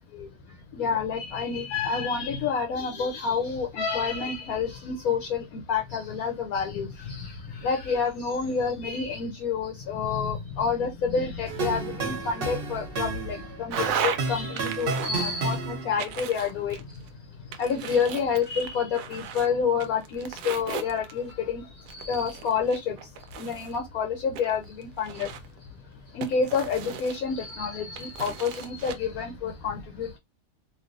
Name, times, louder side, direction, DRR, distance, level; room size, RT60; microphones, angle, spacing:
voice 1, 0.7-7.3 7.6-16.8 17.6-21.6 21.9-22.9 23.4-25.3 26.1-30.2, left 5 dB, 70° left, 1.0 m, -28 dB
sound 1, 11.5-16.2, right 4 dB, 45° right, 0.8 m, -32 dB
sound 2, 13.7-14.2 14.6-15.6 16.0-17.1 17.5-19.5 19.8-21.3 21.9-23.8 24.3-25.6 26.2-27.5 28.0-29.0, right 7 dB, 75° right, 1.1 m, -35 dB
3.2 x 2.6 x 2.5 m
omnidirectional pair, 1.8 m